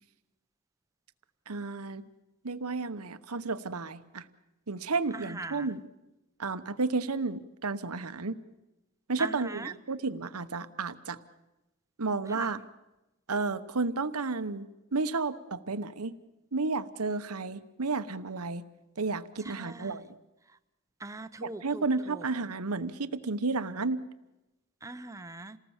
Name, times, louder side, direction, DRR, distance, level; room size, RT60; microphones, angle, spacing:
voice 1, 1.5-2.0 2.4-4.3 4.7-5.8 6.4-8.4 9.1-11.2 12.0-12.6 13.3-16.2 16.5-18.6 19.0-20.0 21.4-24.0, right 3 dB, 85° right, 12 dB, 1.1 m, -32 dB
voice 2, 5.1-5.7 9.2-9.7 12.3-12.5 19.5-20.1 21.0-22.2 24.8-25.6, right 2 dB, 15° right, 11 dB, 0.7 m, -40 dB
28.0 x 19.0 x 7.3 m, 0.99 s
head